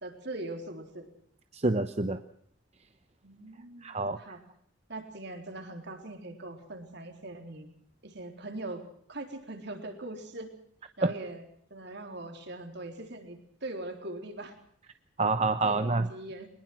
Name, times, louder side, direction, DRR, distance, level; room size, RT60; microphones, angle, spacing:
voice 1, 0.0-1.1 3.2-4.4 4.9-7.7 8.0-10.5 11.0-11.4 11.7-14.6 15.6-16.5, right 2 dB, 60° right, 4 dB, 4.0 m, -41 dB
voice 2, 1.5-2.2 3.8-4.2 11.0-11.1 15.2-16.1, right 3 dB, 35° right, 9 dB, 0.9 m, -27 dB
23.0 x 21.0 x 6.1 m, 0.65 s
head